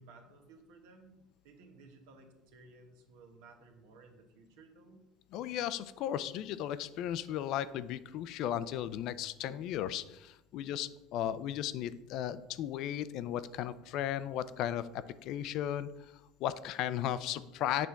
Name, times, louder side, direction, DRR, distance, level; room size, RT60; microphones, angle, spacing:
voice 1, 0.0-5.1, right 3 dB, 80° right, 4 dB, 1.2 m, -57 dB
voice 2, 5.3-15.9 16.4-17.9, left 11 dB, 60° left, 15 dB, 0.4 m, -35 dB
7.4 x 3.4 x 5.8 m, 0.95 s
supercardioid pair, 120°, 0 cm